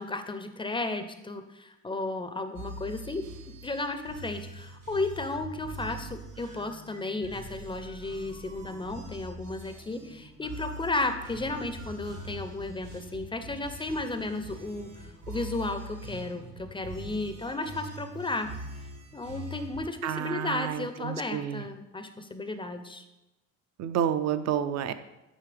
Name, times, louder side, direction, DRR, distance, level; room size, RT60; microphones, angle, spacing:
voice 1, 0.0-3.2 3.6-18.5 19.1-23.0, left 2 dB, 15° left, 8 dB, 0.4 m, -34 dB
sound 1, 2.6-19.8, right 1 dB, 90° right, 1.1 m, -43 dB
voice 2, 20.0-21.6 23.8-24.9, right 9 dB, 60° right, 12 dB, 0.5 m, -29 dB
9.2 x 3.2 x 3.3 m, 0.97 s
cardioid pair, 90°, 30 cm